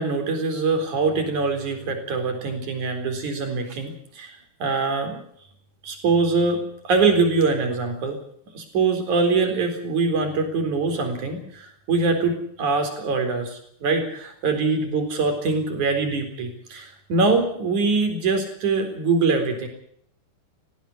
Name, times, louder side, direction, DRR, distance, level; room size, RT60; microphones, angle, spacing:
voice 1, 0.0-5.2 5.8-8.2 8.5-19.7, right 4 dB, 45° right, 5 dB, 5.2 m, -23 dB
19.0 x 16.0 x 9.7 m, 0.64 s
omnidirectional pair, 4.8 m